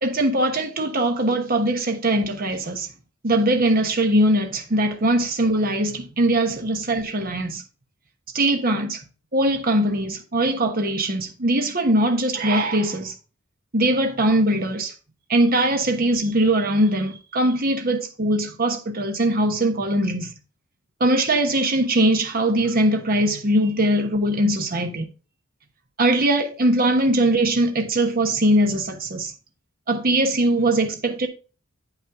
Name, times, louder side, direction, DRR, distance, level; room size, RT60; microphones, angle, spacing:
voice 1, 0.0-2.9 3.2-7.6 8.3-9.0 9.3-13.1 13.7-14.9 15.3-20.3 21.0-25.1 26.0-29.3 29.9-31.3, right 1 dB, 45° right, 1.2 m, -21 dB
8.7 x 5.8 x 3.6 m
head